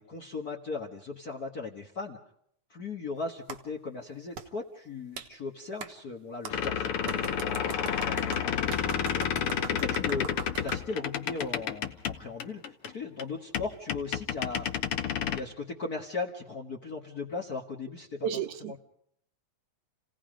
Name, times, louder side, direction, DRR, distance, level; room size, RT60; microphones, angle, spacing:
voice 1, 0.0-2.2 2.7-10.3 10.6-15.0 15.3-18.8, left 4 dB, 40° left, 1.4 m, -38 dB
Clapping, 3.5-3.6 4.4-4.5 5.2-5.3 5.8-5.9 6.4-6.6 7.1-10.8, right 7 dB, 60° right, 2.4 m, -40 dB
sound 1, 6.5-12.9 13.2-13.3 13.5-15.4, left 8 dB, 60° left, 1.7 m, -30 dB
voice 2, 18.2-18.8, right 8 dB, 75° right, 2.4 m, -32 dB
30.0 x 17.5 x 5.1 m
omnidirectional pair, 3.5 m